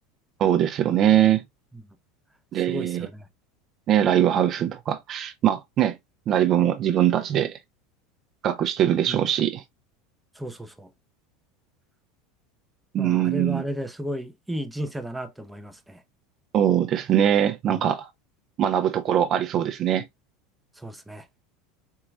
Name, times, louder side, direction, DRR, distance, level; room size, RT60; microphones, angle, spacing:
voice 1, 0.4-1.4 2.5-3.1 3.9-6.0 6.3-7.6 8.4-9.6 12.9-13.6 16.5-18.1 18.6-20.0, right 10 dB, 45° right, 0.6 m, -22 dB
voice 2, 2.5-3.3 9.1-9.2 10.4-10.9 13.0-16.0 17.7-17.8 20.8-21.3, equal, 5° right, 0.7 m, -34 dB
4.6 x 2.9 x 2.4 m
hypercardioid pair, 85°, 0 cm